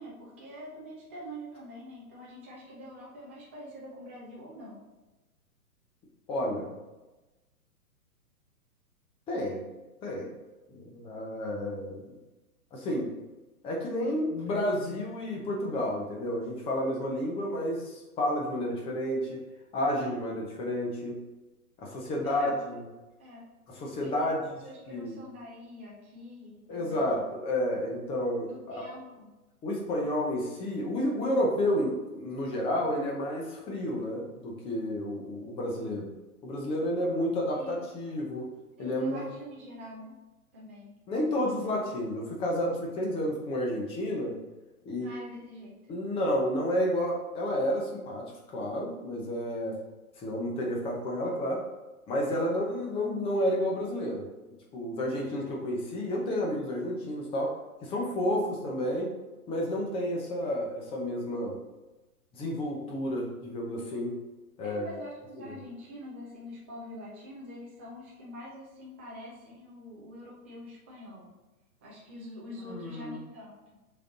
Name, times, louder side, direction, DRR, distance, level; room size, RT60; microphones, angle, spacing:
voice 1, 0.0-4.8 22.2-22.8 23.2-23.4 24.0-24.3 24.6-27.2 28.5-29.3 37.5-37.9 38.8-40.1 40.5-40.9 44.9-45.7 64.6-71.3 71.8-73.5, equal, 10° right, -5 dB, 0.4 m, -45 dB
voice 2, 6.3-6.7 9.3-9.6 10.0-10.3 10.7-12.0 12.7-13.1 13.6-19.4 19.7-21.2 21.8-22.8 23.7-24.4 24.9-25.2 26.7-28.9 29.6-36.1 36.4-38.5 38.8-39.2 41.1-44.3 44.8-45.2 45.9-49.8 50.2-51.6 52.1-54.3 54.7-57.5 57.8-59.1 59.5-61.6 62.3-64.2 64.6-64.9 65.4-65.6 72.6-73.2, left 1 dB, 10° left, -1 dB, 0.8 m, -31 dB
6.6 x 3.9 x 3.8 m, 1.1 s
figure-of-eight pair, 120°, 45 cm